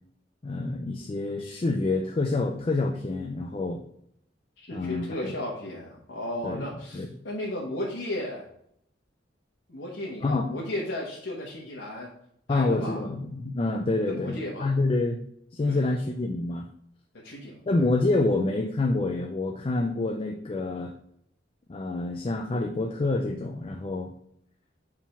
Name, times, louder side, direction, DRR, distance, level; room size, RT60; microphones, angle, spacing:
voice 1, 0.4-3.8 4.7-5.3 6.4-6.6 6.9-7.1 10.2-10.4 12.5-15.2 15.5-16.7 17.7-20.9 21.7-24.1, left 2 dB, 30° left, 4 dB, 0.4 m, -27 dB
voice 2, 4.6-8.5 9.7-12.1 12.5-13.0 14.1-14.7 15.6-16.0 17.2-17.9, left 1 dB, 85° left, -4 dB, 1.2 m, -35 dB
4.8 x 3.7 x 5.6 m, 0.71 s
head